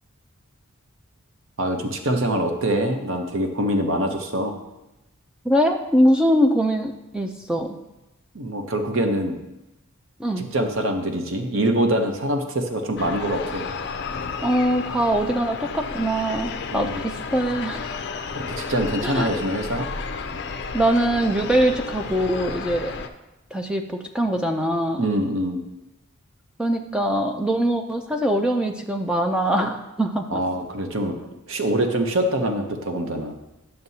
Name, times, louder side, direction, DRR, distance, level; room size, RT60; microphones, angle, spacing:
voice 1, 1.6-4.6 8.3-9.4 10.5-13.7 16.7-17.0 18.3-19.9 25.0-25.6 30.3-31.2 31.5-33.4, right 1 dB, 65° right, 5 dB, 0.8 m, -24 dB
voice 2, 5.4-7.8 10.2-10.4 14.4-17.9 19.0-19.3 20.7-22.9 23.5-25.1 26.6-30.4, equal, 5° right, 3 dB, 0.4 m, -22 dB
sound 1, 13.0-23.1, left 5 dB, 55° left, 0.5 m, -32 dB
10.5 x 6.7 x 2.8 m, 0.97 s
head